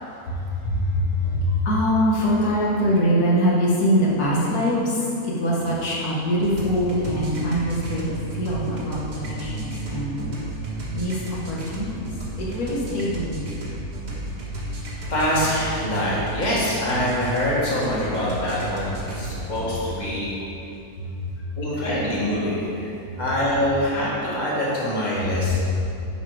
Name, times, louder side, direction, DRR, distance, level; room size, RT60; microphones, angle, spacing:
voice 1, 0.0-10.4 10.9-13.5 21.0-21.6 23.0-23.2 25.2-25.9, equal, 75° left, -6 dB, 1.9 m, -24 dB
sound 1, 6.4-20.0, right 2 dB, 75° right, 2.0 m, -33 dB
voice 2, 15.1-20.3 21.6-25.6, left 1 dB, 25° left, -7 dB, 2.0 m, -25 dB
10.0 x 5.4 x 4.9 m, 2.7 s
omnidirectional pair, 1.6 m